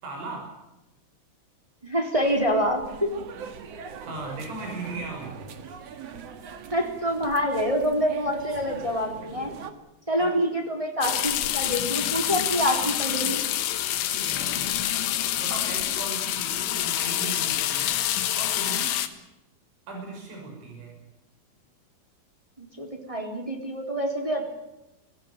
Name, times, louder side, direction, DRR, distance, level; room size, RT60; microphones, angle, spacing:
voice 1, 0.0-0.5 4.0-5.4 10.2-10.4 14.1-19.0 19.9-20.9, right 3 dB, 80° right, 1 dB, 8.8 m, -38 dB
voice 2, 1.8-3.1 6.7-9.5 10.1-13.4 22.6-24.4, equal, 10° right, 2 dB, 3.0 m, -26 dB
sound 1, 2.2-9.7, right 6 dB, 60° right, 1.7 m, -42 dB
sound 2, 11.0-19.1, left 12 dB, 75° left, 3.6 m, -27 dB
24.5 x 17.5 x 9.0 m, 0.95 s
omnidirectional pair, 5.4 m